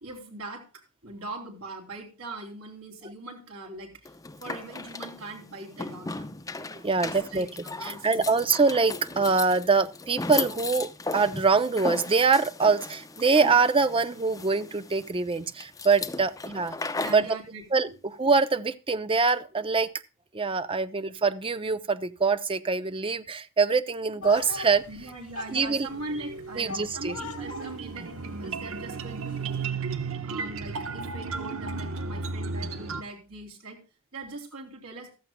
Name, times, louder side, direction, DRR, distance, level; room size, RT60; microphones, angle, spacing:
voice 1, 0.0-3.9 4.4-6.3 7.0-8.2 16.9-17.6 24.9-29.8 30.2-33.8 34.1-35.1, right 2 dB, 80° right, 3.5 m, -41 dB
sound 1, 4.0-17.3, left 3 dB, 15° left, 0.6 m, -37 dB
voice 2, 6.7-7.5 7.8-17.4 17.7-19.9 20.3-24.8 25.5-25.9 26.6-27.1, right 4 dB, 25° right, 0.6 m, -24 dB
sound 2, 24.2-29.6, left 3 dB, 85° left, 2.4 m, -42 dB
sound 3, 25.9-33.0, right 4 dB, 65° right, 1.0 m, -34 dB
15.0 x 13.5 x 2.2 m
head